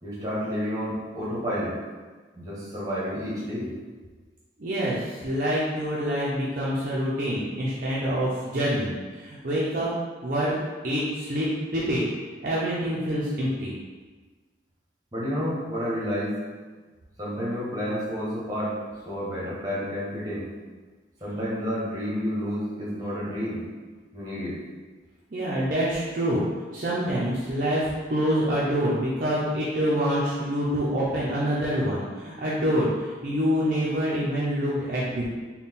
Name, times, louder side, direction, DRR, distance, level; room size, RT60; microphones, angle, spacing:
voice 1, 0.0-1.8 2.3-3.7 15.1-16.4 17.2-18.7 19.0-20.5 21.2-23.6 24.1-24.6, equal, 20° right, -8 dB, 1.2 m, -30 dB
voice 2, 4.6-9.9 10.2-10.5 10.8-12.0 12.4-13.7 25.3-26.4 26.7-35.3, equal, 50° right, -7 dB, 0.6 m, -26 dB
4.1 x 2.2 x 3.6 m, 1.4 s
head